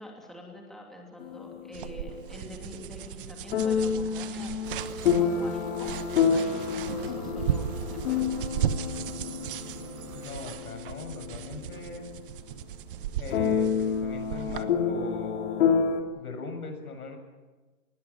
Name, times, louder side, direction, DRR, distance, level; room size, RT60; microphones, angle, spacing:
voice 1, 0.0-6.0 6.3-7.6 7.9-8.3, left 1 dB, ahead, -1 dB, 3.0 m, -45 dB
sound 1, 1.2-2.5 3.5-12.3 12.6-12.7 13.3-16.0, left 6 dB, 50° left, 2.9 m, -29 dB
sound 2, 1.7-14.6, right 10 dB, 40° right, 1.1 m, -36 dB
sound 3, 4.6-10.3, right 6 dB, 80° right, 3.8 m, -45 dB
voice 2, 10.1-12.1 13.2-15.9 16.1-17.2, left 4 dB, 90° left, 6 dB, 7.2 m, -40 dB
28.0 x 20.5 x 7.0 m, 1.2 s
hypercardioid pair, 160°, 43 cm